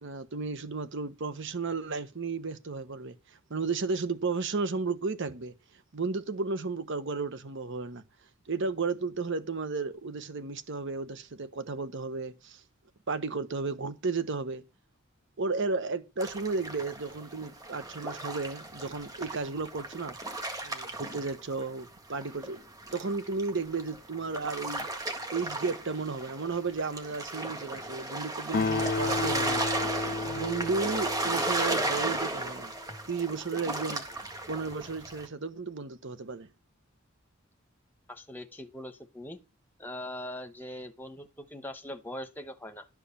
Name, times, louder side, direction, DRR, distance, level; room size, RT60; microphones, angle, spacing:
voice 1, 0.0-3.1 3.5-5.5 5.9-8.0 8.5-12.6 13.1-14.6 15.4-20.2 20.6-22.6 22.9-24.9 25.3-29.6 30.2-32.7 33.1-34.0 34.5-36.5, right 4 dB, 60° right, 1.0 m, -33 dB
sound 1, 16.2-21.9 22.2-35.3, right 2 dB, 20° right, 1.7 m, -35 dB
Acoustic guitar, 28.5-32.3, left 3 dB, 45° left, 0.5 m, -33 dB
voice 2, 38.1-39.4 39.8-42.9, left 1 dB, 10° left, 1.0 m, -41 dB
11.5 x 4.8 x 7.0 m
head